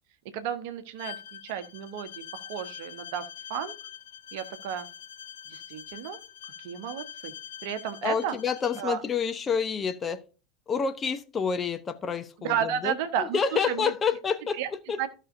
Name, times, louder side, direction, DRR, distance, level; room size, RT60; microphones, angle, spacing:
voice 1, 0.3-3.7 4.3-4.9 5.5-6.2 6.6-7.3 7.6-8.4 8.8-9.0 12.4-13.9 14.6-14.7 15.0-15.1, right 9 dB, 55° right, 10 dB, 1.1 m, -32 dB
Bowed string instrument, 1.0-8.9, left 10 dB, 65° left, 0.9 m, -44 dB
voice 2, 8.0-10.2 10.7-14.6 14.9-15.0, left 6 dB, 25° left, 10 dB, 0.9 m, -28 dB
15.0 x 5.5 x 2.6 m, 0.34 s
figure-of-eight pair, 75°, 0 cm